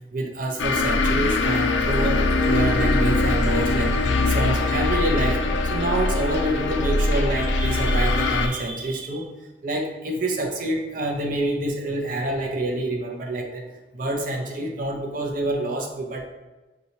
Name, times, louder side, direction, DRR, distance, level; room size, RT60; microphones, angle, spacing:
voice 1, 0.1-9.3 9.6-13.6 13.9-16.2, right 1 dB, 50° right, 2 dB, 0.6 m, -27 dB
sound 1, 0.6-8.5, left 2 dB, 90° left, 0.4 m, -22 dB
5.3 x 2.7 x 2.9 m, 1.1 s
head